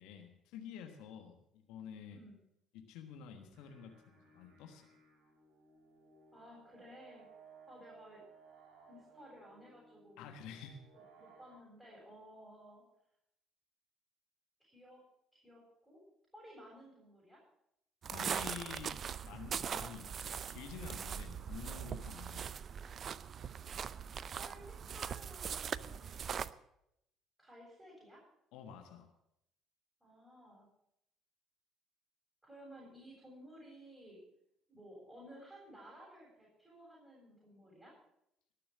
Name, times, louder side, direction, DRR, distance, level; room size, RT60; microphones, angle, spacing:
voice 1, 0.0-2.2 2.7-4.9 10.2-10.8 18.1-22.4 28.5-29.1, left 7 dB, 70° left, 5 dB, 1.4 m, -50 dB
sound 1, 3.3-11.6, right 5 dB, 65° right, 4.8 m, -62 dB
voice 2, 6.3-7.3 7.7-8.2 8.9-10.2 10.9-12.8 14.6-15.0 15.3-16.0 16.3-17.4 23.5-23.9 24.3-26.1 27.4-28.2 30.0-30.7 32.4-34.2 34.7-37.9, equal, 10° right, -4 dB, 7.2 m, -56 dB
sound 2, 18.0-26.5, right 7 dB, 45° right, 0.5 m, -41 dB
18.5 x 6.8 x 7.3 m, 0.79 s
hypercardioid pair, 55°, 0 cm